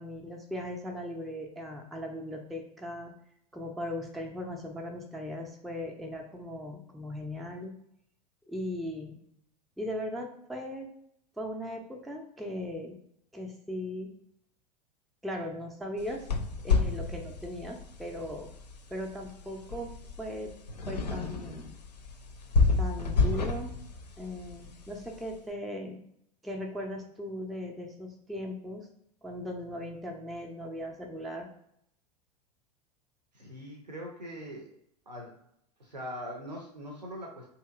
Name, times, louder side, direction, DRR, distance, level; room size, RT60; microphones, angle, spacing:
voice 1, 0.0-3.1 3.5-7.7 8.5-9.2 9.8-10.9 11.4-13.0 13.3-14.1 15.2-16.3 16.6-18.5 18.9-20.5 20.9-21.7 22.8-23.7 24.2-26.0 26.4-28.9 29.2-31.5, left 1 dB, ahead, 1 dB, 0.3 m, -38 dB
sound 1, 16.0-25.4, left 4 dB, 80° left, 0.5 m, -31 dB
voice 2, 33.3-34.7 35.1-35.4 35.8-37.5, equal, 85° right, 0 dB, 0.6 m, -41 dB
3.0 x 2.8 x 2.3 m, 0.73 s
figure-of-eight pair, 85°, 21 cm